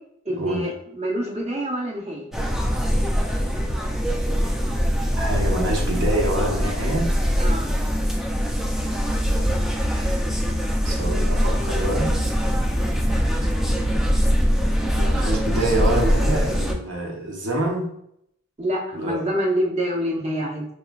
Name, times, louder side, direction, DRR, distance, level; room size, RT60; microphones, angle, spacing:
voice 1, 0.2-2.3 7.4-7.7 18.6-20.7, equal, 30° right, -2 dB, 0.9 m, -26 dB
sound 1, 2.3-16.7, equal, ahead, 0.3 m, -22 dB
voice 2, 5.1-7.1 10.8-12.1 14.9-17.9 18.9-19.2, right 1 dB, 65° right, -1 dB, 0.9 m, -26 dB
4.6 x 3.0 x 2.3 m, 0.73 s
head